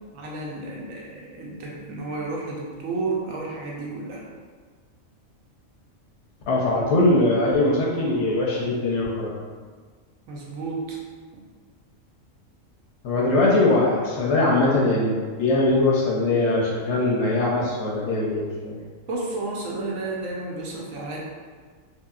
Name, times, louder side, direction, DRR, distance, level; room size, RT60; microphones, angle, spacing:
voice 1, 0.1-4.2 10.3-11.0 11.3-11.4 19.1-21.2, right 3 dB, 75° right, -3 dB, 1.0 m, -31 dB
voice 2, 6.5-9.4 13.0-18.8, left 2 dB, 65° left, -4 dB, 0.8 m, -21 dB
2.9 x 2.8 x 2.3 m, 1.5 s
omnidirectional pair, 1.4 m